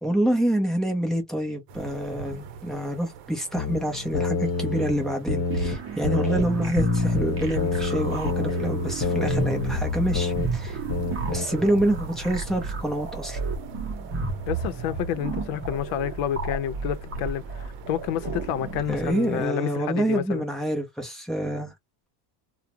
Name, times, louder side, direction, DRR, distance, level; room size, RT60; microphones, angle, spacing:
voice 1, 0.0-10.8 11.3-13.4 18.9-21.7, right 1 dB, ahead, 0.4 m, -27 dB
sound 1, 1.7-19.5, right 5 dB, 60° right, 0.8 m, -41 dB
sound 2, 3.5-5.8 6.0-10.5 10.9-11.4, left 3 dB, 30° left, 1.1 m, -27 dB
sound 3, 5.5-19.1, right 4 dB, 30° right, 0.7 m, -34 dB
voice 2, 14.5-20.5, left 10 dB, 75° left, 0.6 m, -29 dB
2.3 x 2.1 x 2.8 m
cardioid pair, 155°, 49 cm